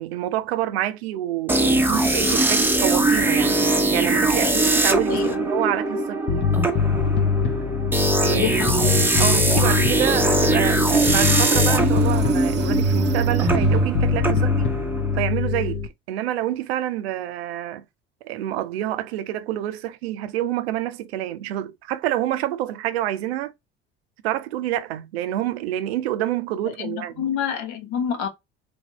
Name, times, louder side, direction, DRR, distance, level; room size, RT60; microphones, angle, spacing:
voice 1, 0.0-3.5 3.9-6.5 8.2-14.7 15.1-17.8 18.2-23.5 24.2-27.3, right 13 dB, 90° right, 0.5 m, -27 dB
sound 1, 1.5-15.2, right 2 dB, 5° right, 0.7 m, -22 dB
voice 2, 5.1-5.4 8.3-8.8 9.5-9.9 26.8-28.3, left 8 dB, 70° left, 1.0 m, -28 dB
Bass guitar, 6.3-15.9, left 6 dB, 35° left, 0.6 m, -23 dB
sound 2, 10.4-10.5 11.1-14.2, right 18 dB, 35° right, 0.4 m, -28 dB
3.1 x 2.6 x 2.9 m
hypercardioid pair, 70°, 30 cm